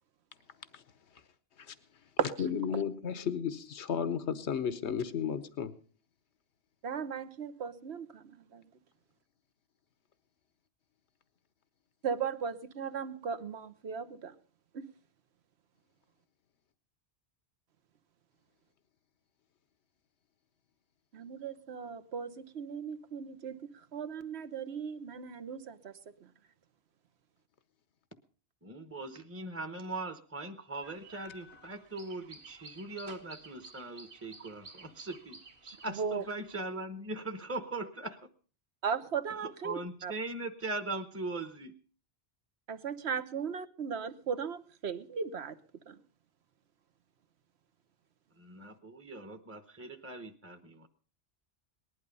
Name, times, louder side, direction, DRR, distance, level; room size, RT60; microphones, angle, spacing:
voice 1, 2.4-5.7, left 7 dB, 90° left, 1.3 m, -33 dB
voice 2, 6.8-8.6 12.0-14.3 14.7-14.9 21.1-25.9 26.2-26.3 36.0-36.2 38.8-40.1 42.7-45.6 45.9-46.0, right 6 dB, 75° right, 1.3 m, -37 dB
voice 3, 28.6-38.2 39.4-41.7 48.4-50.9, right 2 dB, 15° right, 0.9 m, -40 dB
sound 1, 30.8-36.6, right 3 dB, 55° right, 1.7 m, -53 dB
19.5 x 12.0 x 5.4 m
omnidirectional pair, 1.1 m